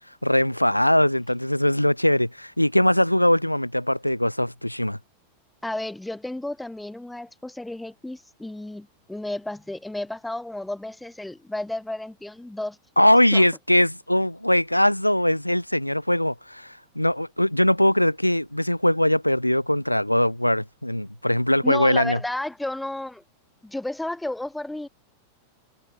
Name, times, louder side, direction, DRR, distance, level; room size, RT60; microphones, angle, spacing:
voice 1, 0.2-5.0 13.0-22.2, left 1 dB, 90° left, 2.5 m, -21 dB
voice 2, 5.6-12.8 13.3-13.5 21.6-23.2 23.6-24.9, left 1 dB, 5° left, 4.1 m, -32 dB
figure-of-eight pair, 90°, 0 cm